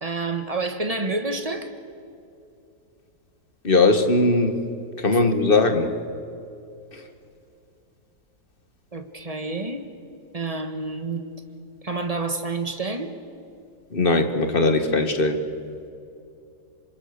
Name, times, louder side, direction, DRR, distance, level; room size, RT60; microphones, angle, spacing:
voice 1, 0.0-1.7 8.9-9.9 10.3-11.2 11.8-13.1, right 3 dB, 25° right, 7 dB, 1.5 m, -28 dB
voice 2, 3.6-4.6 5.0-6.0 13.9-15.4, left 3 dB, 35° left, 7 dB, 1.7 m, -19 dB
27.0 x 26.0 x 6.7 m, 2.6 s
omnidirectional pair, 1.8 m